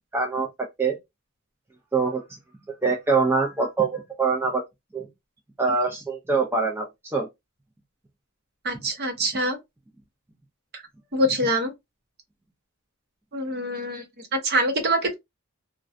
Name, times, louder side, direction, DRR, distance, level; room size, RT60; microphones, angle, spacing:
voice 1, 0.1-0.5 0.8-1.0 1.9-2.2 2.8-4.6 4.9-5.1 5.6-7.3, right 4 dB, 10° right, 0.4 m, -24 dB
voice 2, 8.6-9.6 10.7-10.8 11.1-11.7 13.3-15.1, right 1 dB, 45° right, 0.7 m, -25 dB
2.5 x 2.2 x 2.4 m
head